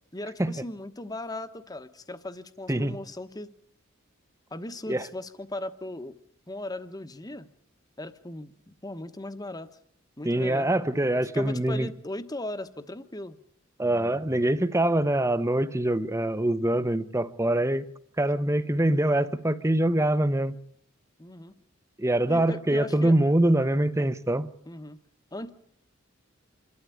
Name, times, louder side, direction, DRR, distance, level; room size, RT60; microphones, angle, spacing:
voice 1, 0.1-3.5 4.5-6.2 6.5-7.5 8.0-9.8 10.2-10.7 11.3-13.4 21.2-21.5 22.3-23.2 24.7-25.0 25.3-25.5, left 1 dB, 20° left, 1.1 m, -38 dB
voice 2, 10.2-11.9 13.8-17.8 18.2-20.6 22.0-24.5, right 1 dB, 15° right, 0.9 m, -24 dB
27.0 x 12.5 x 10.0 m
head